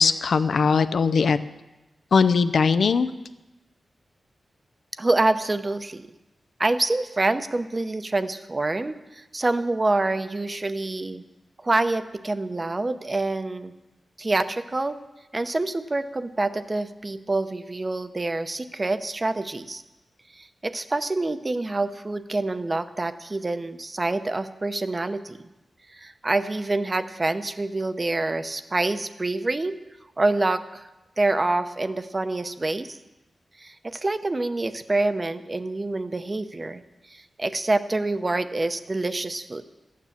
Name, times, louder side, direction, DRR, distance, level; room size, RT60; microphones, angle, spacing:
voice 1, 0.0-1.4 2.1-3.1, left 5 dB, 75° left, 13 dB, 0.5 m, -20 dB
voice 2, 5.0-6.1 6.6-11.2 11.6-13.7 14.2-15.0 15.3-19.8 20.4-25.4 25.9-29.8 30.2-30.9 31.2-33.0 33.6-36.8 37.1-39.6, right 2 dB, 30° right, 10 dB, 0.7 m, -26 dB
13.5 x 9.4 x 7.3 m, 1.1 s
wide cardioid pair, 100°, 0 cm